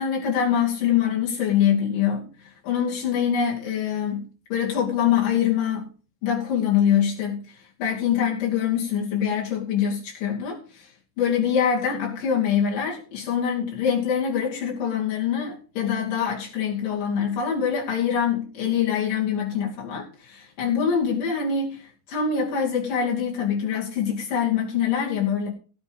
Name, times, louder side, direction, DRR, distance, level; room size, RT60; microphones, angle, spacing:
voice 1, 0.0-4.2 4.5-5.9 6.2-10.9 11.2-25.5, left 8 dB, 75° left, 4.4 m, -24 dB
17.5 x 7.5 x 5.3 m
omnidirectional pair, 3.9 m